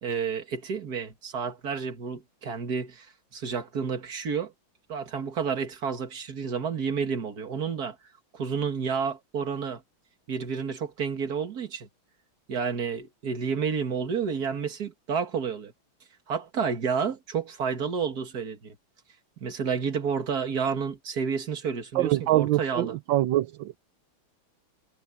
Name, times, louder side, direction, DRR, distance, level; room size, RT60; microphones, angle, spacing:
voice 1, 0.0-4.5 4.9-8.0 8.3-9.8 10.3-11.9 12.5-15.7 16.3-18.8 19.4-22.9, right 6 dB, 50° right, 2.3 m, -30 dB
voice 2, 21.9-23.8, right 15 dB, 75° right, 1.3 m, -24 dB
omnidirectional pair, 2.3 m